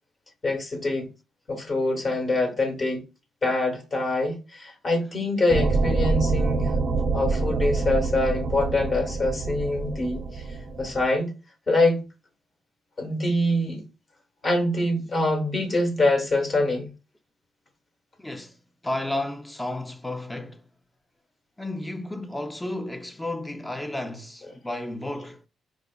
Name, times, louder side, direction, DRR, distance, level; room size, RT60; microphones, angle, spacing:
voice 1, 0.4-1.1 1.5-3.0 3.4-6.8 7.1-10.4 10.8-11.3 11.7-12.0 13.0-13.8 14.4-16.9, left 2 dB, 35° left, 1.1 m, -24 dB
sound 1, 5.5-11.1, right 3 dB, 50° right, 0.5 m, -26 dB
voice 2, 18.2-18.6 18.8-20.7 21.6-25.4, left 1 dB, 10° left, 0.5 m, -32 dB
4.9 x 2.3 x 2.2 m
cardioid pair, 90°, 0 cm